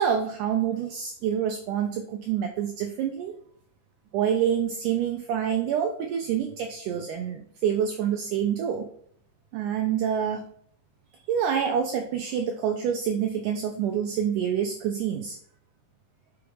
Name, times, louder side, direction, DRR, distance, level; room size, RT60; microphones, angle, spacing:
voice 1, 0.0-3.3 4.1-8.9 9.5-10.5 11.3-15.4, right 8 dB, 80° right, 4 dB, 1.9 m, -27 dB
6.0 x 3.6 x 4.7 m, 0.62 s
omnidirectional pair, 4.2 m